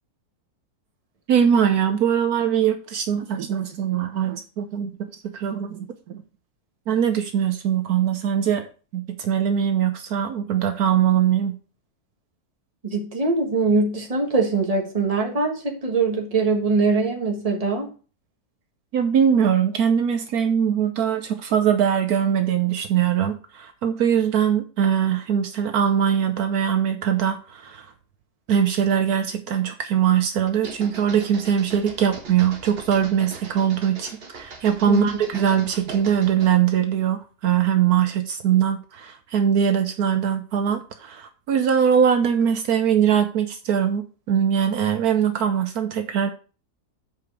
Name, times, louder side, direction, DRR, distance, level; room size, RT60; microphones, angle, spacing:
voice 1, 1.3-5.0 5.2-6.2 6.9-8.6 8.9-11.6 18.9-27.8 28.5-46.3, right 8 dB, 70° right, 1.2 m, -21 dB
voice 2, 12.8-17.9 34.8-35.1, right 3 dB, 25° right, 1.5 m, -22 dB
sound 1, 30.5-36.6, right 4 dB, 40° right, 1.3 m, -41 dB
7.8 x 4.8 x 4.7 m
omnidirectional pair, 1.7 m